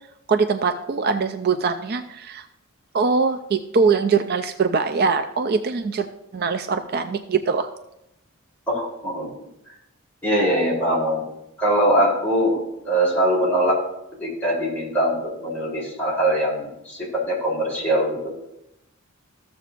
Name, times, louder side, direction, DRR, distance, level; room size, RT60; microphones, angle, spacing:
voice 1, 0.3-2.5 2.9-6.0 6.3-7.7, right 5 dB, 45° right, 8 dB, 0.4 m, -22 dB
voice 2, 8.7-9.3 10.2-11.3 11.6-12.6 12.8-13.8 14.2-18.3, right 1 dB, 10° left, -5 dB, 3.3 m, -22 dB
14.5 x 7.2 x 2.5 m, 0.85 s
head